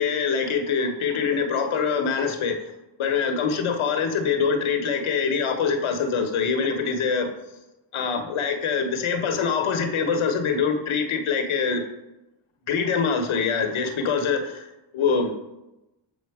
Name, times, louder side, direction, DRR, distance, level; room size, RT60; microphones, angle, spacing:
voice 1, 0.0-2.6 3.0-7.3 7.9-11.8 12.7-14.7 14.9-15.3, left 5 dB, 75° left, 5 dB, 1.2 m, -24 dB
7.4 x 4.0 x 4.7 m, 0.96 s
cardioid pair, 55°, 49 cm